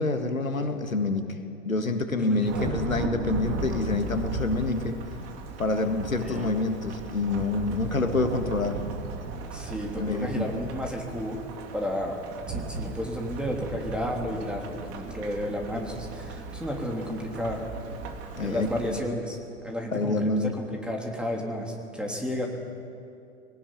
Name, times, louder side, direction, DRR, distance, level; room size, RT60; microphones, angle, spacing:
voice 1, 0.0-1.4 1.7-5.0 5.6-8.8 10.0-10.5 18.4-19.0 19.9-20.5, left 3 dB, 85° left, 7 dB, 1.8 m, -27 dB
voice 2, 2.2-2.7 6.2-6.5 9.5-11.4 11.7-12.2 12.5-17.6 18.4-22.5, equal, ahead, 0 dB, 3.3 m, -32 dB
Thunderstorm / Rain, 2.5-19.0, right 4 dB, 35° right, 2.7 m, -36 dB
20.5 x 18.5 x 9.4 m, 2.6 s
figure-of-eight pair, 95°, 40 cm